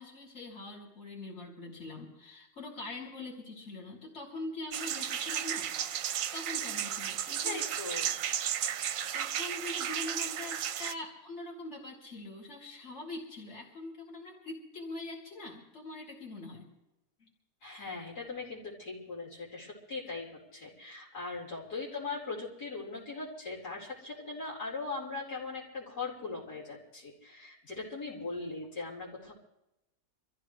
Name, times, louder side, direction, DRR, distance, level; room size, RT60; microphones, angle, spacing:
voice 1, 0.0-5.7 6.3-7.6 9.1-16.7 17.2-17.3, left 2 dB, 45° left, -3 dB, 3.4 m, -43 dB
sound 1, 4.7-10.9, right 9 dB, 65° right, 1.0 m, -34 dB
voice 2, 7.4-8.1 17.6-29.3, left 3 dB, 85° left, -5 dB, 5.2 m, -40 dB
25.5 x 15.0 x 3.3 m, 0.90 s
omnidirectional pair, 1.7 m